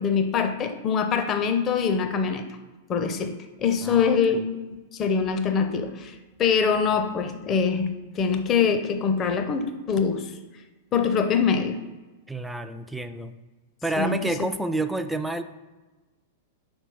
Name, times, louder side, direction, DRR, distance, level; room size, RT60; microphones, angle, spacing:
voice 1, 0.0-2.5 2.9-10.3 10.9-11.8 14.0-14.2, left 6 dB, 30° left, 6 dB, 0.7 m, -24 dB
voice 2, 3.8-4.1 12.3-13.4 13.8-15.4, right 2 dB, 5° right, 9 dB, 0.4 m, -29 dB
4.5 x 4.4 x 5.4 m, 1.2 s
figure-of-eight pair, 100°, 0 cm